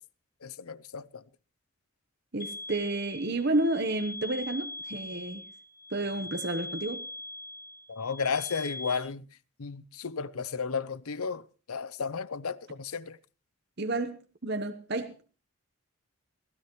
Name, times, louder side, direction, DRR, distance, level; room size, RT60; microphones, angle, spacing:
voice 1, 0.4-1.2 7.9-9.2 9.6-11.4 11.7-13.2, left 5 dB, 90° left, 0.7 m, -33 dB
voice 2, 2.3-5.4 5.9-7.1 13.8-15.1, right 2 dB, 50° right, 1.1 m, -31 dB
sound 1, 2.4-9.0, left 2 dB, 15° left, 2.2 m, -41 dB
23.0 x 16.0 x 3.1 m
head